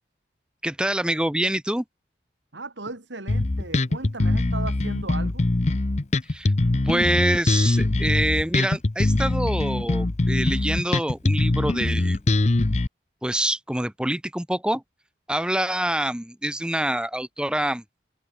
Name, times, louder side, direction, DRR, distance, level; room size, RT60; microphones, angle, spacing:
voice 1, 0.6-1.8 6.3-6.5 6.8-12.2 13.2-14.8 15.3-17.8, right 1 dB, 5° right, 0.8 m, -26 dB
voice 2, 2.5-5.5, right 2 dB, 85° right, 2.8 m, -36 dB
Bass guitar, 3.3-12.9, left 2 dB, 40° left, 0.7 m, -22 dB
head